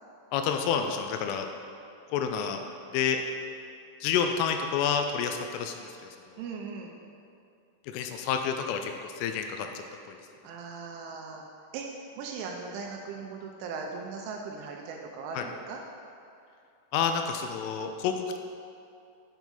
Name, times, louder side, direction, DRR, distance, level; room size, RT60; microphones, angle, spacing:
voice 1, 0.3-1.5 2.1-2.6 2.9-3.2 4.0-5.9 7.8-9.8 15.3-15.5 16.9-18.4, left 7 dB, 85° left, 5 dB, 3.0 m, -29 dB
voice 2, 6.4-7.0 10.4-11.5 11.7-11.9 12.2-15.8, right 5 dB, 85° right, 1 dB, 2.9 m, -38 dB
8.0 x 7.1 x 3.9 m, 2.5 s
omnidirectional pair, 5.8 m